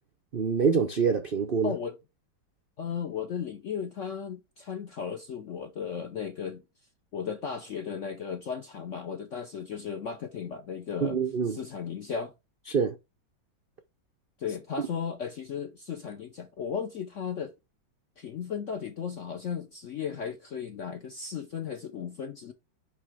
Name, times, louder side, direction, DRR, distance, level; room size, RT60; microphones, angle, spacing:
voice 1, 0.3-1.7 11.0-11.6 12.7-13.0, right 6 dB, 75° right, 0.5 m, -25 dB
voice 2, 1.6-2.0 2.8-6.6 7.1-11.2 11.5-12.3 14.4-17.5 18.2-22.5, left 7 dB, 60° left, 0.8 m, -35 dB
9.5 x 3.3 x 4.8 m
omnidirectional pair, 2.1 m